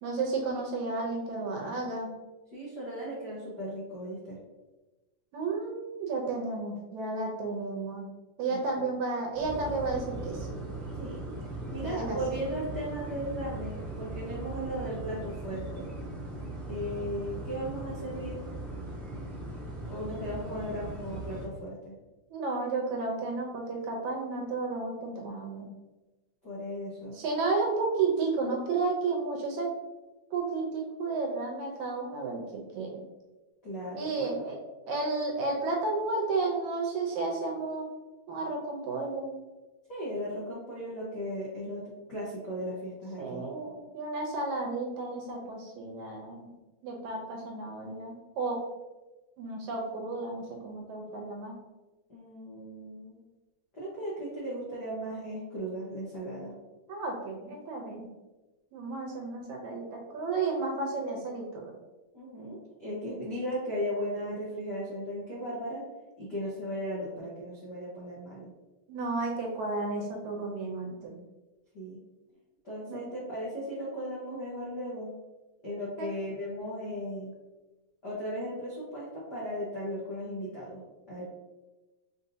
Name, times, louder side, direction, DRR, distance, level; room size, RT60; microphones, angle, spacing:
voice 1, 0.0-2.2 5.3-8.1 8.4-10.6 11.8-12.2 22.3-25.7 27.1-29.7 30.3-33.0 34.0-34.6 34.9-37.9 38.3-39.3 43.2-46.5 46.8-48.6 49.4-51.6 56.9-58.1 58.7-61.7 68.9-71.2 72.9-73.0 76.0-76.1, right 3 dB, 75° right, -1 dB, 1.9 m, -32 dB
voice 2, 2.5-4.4 8.5-8.9 10.9-11.2 11.4-15.9 16.7-18.4 19.8-21.9 26.4-27.2 33.6-34.4 39.9-41.8 42.1-43.4 52.1-53.2 53.7-56.5 62.1-65.8 66.2-68.5 71.7-72.0 72.6-75.1 75.6-77.3 78.0-81.3, equal, 75° left, -8 dB, 0.9 m, -36 dB
sound 1, 9.3-21.5, right 1 dB, 35° right, 0.9 m, -39 dB
5.4 x 2.7 x 2.7 m, 1.1 s
omnidirectional pair, 3.6 m